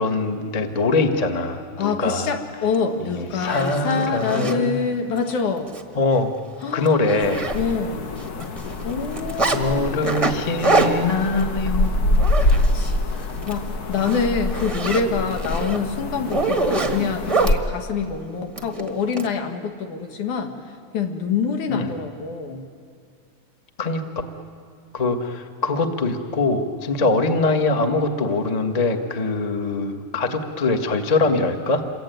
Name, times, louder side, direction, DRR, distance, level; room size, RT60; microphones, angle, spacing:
voice 1, 0.0-2.3 3.1-4.8 5.9-6.3 6.7-7.5 9.5-12.0 13.1-13.3 21.7-21.9 23.8-24.0 24.9-31.8, left 3 dB, 35° left, 6 dB, 0.6 m, -23 dB
voice 2, 1.8-5.7 6.6-6.9 7.5-8.1 8.8-10.1 10.7-10.9 12.4-13.0 13.5-22.7 27.0-27.1, left 5 dB, 85° left, 5 dB, 3.3 m, -26 dB
Zipper (clothing), 2.7-2.8 3.3-4.6 5.2-5.3 5.7-5.8 6.2-6.3 6.6-7.9 8.2-9.6 10.0-13.0 13.3-13.6 13.9-17.6 18.6-19.3, right 3 dB, 25° right, 0.7 m, -25 dB
sound 1, 7.2-17.6, left 1 dB, 65° left, 0.9 m, -25 dB
28.0 x 23.0 x 9.2 m, 2.2 s
omnidirectional pair, 3.4 m